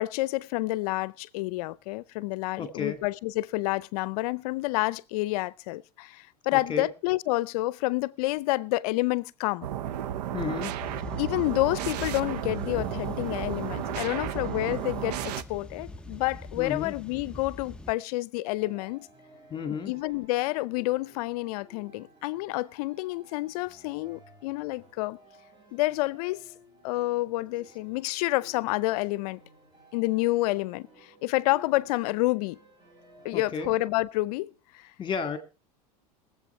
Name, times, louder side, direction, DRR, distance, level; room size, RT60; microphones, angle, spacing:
voice 1, 0.0-9.7 11.2-19.1 19.9-25.2 25.7-26.4 26.8-29.4 29.9-32.6 33.2-34.9, left 19 dB, 65° left, 0.6 m, -29 dB
voice 2, 2.6-3.0 6.5-6.9 10.3-10.8 16.6-17.0 19.5-19.9 33.3-33.7 35.0-35.4, left 6 dB, 25° left, 2.1 m, -32 dB
sound 1, 9.6-15.4, right 11 dB, 75° right, 0.9 m, -33 dB
sound 2, 10.8-17.9, left 2 dB, 5° left, 0.7 m, -42 dB
sound 3, 18.6-33.5, equal, 20° right, 5.8 m, -56 dB
21.5 x 7.8 x 4.4 m
supercardioid pair, 115°, 21 cm